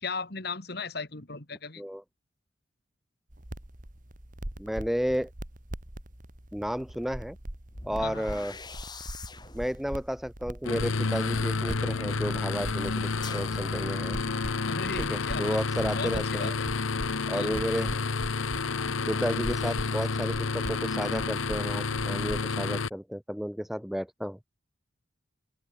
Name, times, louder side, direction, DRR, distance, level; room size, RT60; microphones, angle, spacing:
voice 1, 0.0-1.8 8.0-8.2 14.7-15.6 15.9-16.6 17.3-17.5, left 4 dB, 55° left, 2.2 m, -36 dB
sound 1, 3.3-22.5, right 1 dB, 40° right, 2.4 m, -42 dB
voice 2, 4.6-5.3 6.5-7.4 7.8-8.5 9.5-14.2 15.0-16.5 17.3-17.9 19.1-24.4, equal, ahead, 0.5 m, -32 dB
sound 2, 6.1-6.2 7.7-11.8 13.2-14.6, left 3 dB, 20° left, 2.3 m, -46 dB
sound 3, 10.7-22.9, left 4 dB, 90° left, 1.0 m, -30 dB
open air
head